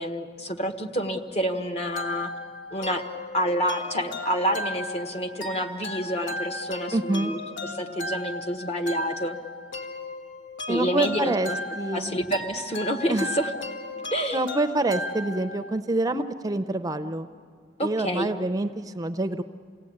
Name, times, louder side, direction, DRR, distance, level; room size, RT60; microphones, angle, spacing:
voice 1, 0.0-2.3 2.7-3.0 3.3-9.4 10.7-11.6 11.9-13.5 14.1-14.4 17.8-18.3, equal, 35° left, 5 dB, 1.4 m, -28 dB
sound 1, 2.0-15.8, left 2 dB, 80° left, 1.7 m, -36 dB
voice 2, 6.9-7.3 10.7-11.5 11.8-12.2 13.1-13.3 14.3-17.3 17.8-19.4, right 2 dB, 20° right, 9 dB, 0.6 m, -26 dB
28.5 x 18.0 x 8.7 m, 2.1 s
head